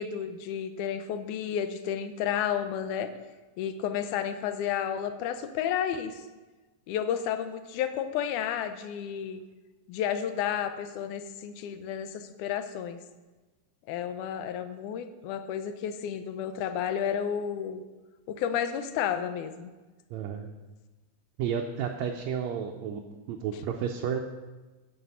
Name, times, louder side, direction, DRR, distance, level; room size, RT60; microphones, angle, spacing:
voice 1, 0.0-3.1 3.6-6.2 6.9-9.4 9.9-13.0 13.9-17.8 18.3-19.7, left 9 dB, 80° left, 9 dB, 2.1 m, -31 dB
voice 2, 20.1-20.5 21.4-23.0 23.3-24.2, right 8 dB, 75° right, 2 dB, 1.8 m, -31 dB
9.3 x 7.6 x 5.6 m, 1.2 s
omnidirectional pair, 3.7 m